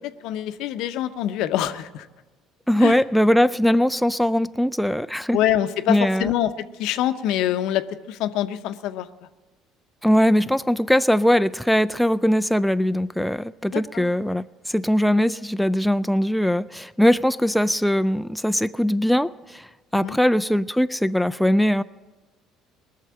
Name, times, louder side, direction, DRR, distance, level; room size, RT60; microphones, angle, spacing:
voice 1, 0.2-2.1 2.8-3.0 5.3-6.5 6.8-7.8 8.1-9.1 13.7-14.1 20.0-20.2, left 12 dB, 70° left, 11 dB, 0.7 m, -24 dB
voice 2, 2.7-5.4 5.9-6.3 10.0-19.7 19.9-21.8, equal, ahead, 12 dB, 0.4 m, -21 dB
19.5 x 6.6 x 8.6 m, 1.2 s
hypercardioid pair, 70°, 0 cm